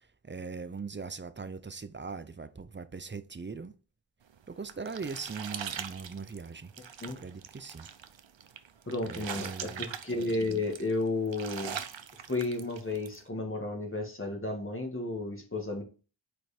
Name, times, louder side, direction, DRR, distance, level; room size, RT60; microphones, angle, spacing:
voice 1, 0.0-3.7 4.5-6.7 7.2-7.9 9.0-9.9, right 4 dB, 25° right, 0.6 m, -40 dB
sound 1, 4.3-13.2, right 8 dB, 70° right, 0.7 m, -42 dB
voice 2, 8.9-11.8 12.3-15.8, left 2 dB, 25° left, 2.0 m, -33 dB
5.2 x 4.6 x 4.3 m
wide cardioid pair, 50°, 46 cm